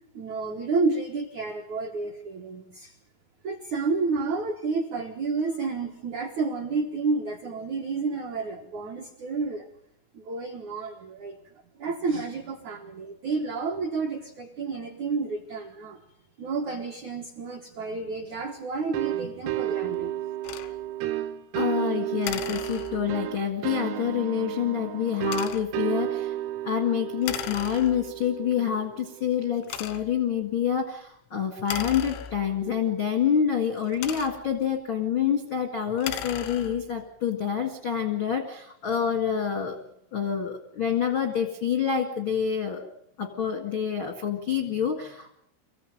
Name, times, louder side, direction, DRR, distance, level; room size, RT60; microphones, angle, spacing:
voice 1, 0.1-2.9 3.4-9.7 10.1-11.4 11.8-16.0 16.4-20.1, right 4 dB, 70° right, 2 dB, 1.8 m, -30 dB
sound 1, 18.9-29.4, right 14 dB, 85° right, 3.8 m, -32 dB
sound 2, 20.4-20.7 22.2-23.3 25.2-25.8 27.2-28.2 28.9-29.0 29.6-30.3 31.6-32.7 33.7-34.6 35.9-37.0, left 10 dB, 90° left, 3.7 m, -36 dB
voice 2, 21.5-26.3 26.6-39.8 40.1-42.9 43.2-45.3, left 8 dB, 75° left, 4 dB, 1.1 m, -27 dB
25.0 x 15.5 x 9.1 m, 0.76 s
omnidirectional pair, 5.7 m